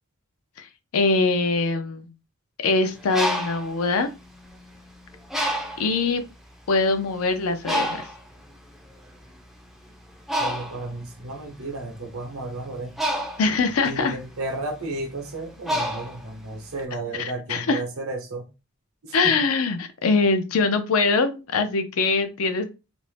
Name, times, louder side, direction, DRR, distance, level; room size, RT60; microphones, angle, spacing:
voice 1, 0.9-2.1 2.6-4.1 5.8-6.2 6.7-8.0 13.4-14.2 17.2-17.8 19.1-22.7, left 3 dB, 75° left, 0.5 m, -23 dB
Bird, 2.9-4.8 5.3-6.0 6.7-6.8 7.1-16.8, equal, ahead, 0.4 m, -30 dB
voice 2, 10.4-13.0 13.8-18.5 19.0-19.4, right 2 dB, 75° right, 0.8 m, -33 dB
2.5 x 2.0 x 3.2 m
head